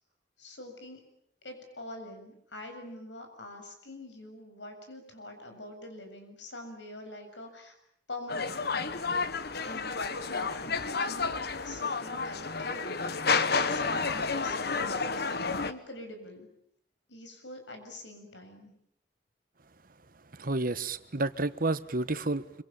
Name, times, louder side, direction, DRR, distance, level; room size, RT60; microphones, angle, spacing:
voice 1, 0.4-1.0 1.4-7.7 8.1-8.9 9.6-13.0 13.7-15.3 15.6-16.5 17.1-18.7, left 1 dB, 85° left, 5 dB, 7.4 m, -45 dB
sound 1, 8.3-15.7, left 4 dB, 60° left, 1.5 m, -30 dB
voice 2, 20.3-22.6, right 2 dB, 50° right, 13 dB, 1.4 m, -30 dB
26.0 x 26.0 x 8.8 m, 0.71 s
head